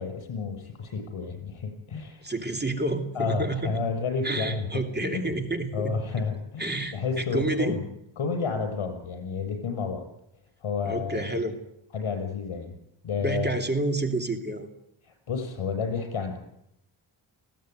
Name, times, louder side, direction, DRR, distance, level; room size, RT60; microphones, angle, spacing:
voice 1, 0.0-2.3 3.1-5.4 5.7-7.8 8.2-10.0 10.6-11.2 11.9-12.7 13.0-13.5 15.0-16.4, left 5 dB, 80° left, 6 dB, 6.4 m, -31 dB
voice 2, 2.2-3.8 4.2-6.0 6.6-7.8 10.8-11.6 13.2-14.7, right 2 dB, 20° right, 4 dB, 2.8 m, -29 dB
20.5 x 16.5 x 9.4 m, 0.80 s
wide cardioid pair, 120°, 49 cm